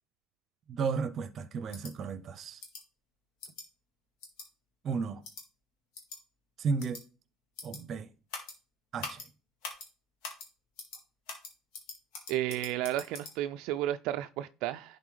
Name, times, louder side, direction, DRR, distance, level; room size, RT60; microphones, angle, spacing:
voice 1, 0.7-2.6 4.8-5.2 6.6-7.0 7.6-8.1 8.9-9.2, right 5 dB, 45° right, 0.7 m, -33 dB
sound 1, 1.7-1.9 2.6-2.8 3.4-3.6 4.2-4.5 5.2-5.4 5.9-6.2 6.8-7.0 7.6-7.8 8.3-8.5 9.0-9.3 9.6-9.9 10.2-10.5 10.8-11.0 11.3-13.3, left 4 dB, 80° left, 1.7 m, -43 dB
voice 2, 12.3-15.0, right 13 dB, 75° right, 0.3 m, -33 dB
10.5 x 4.0 x 3.2 m
supercardioid pair, 95°, 0 cm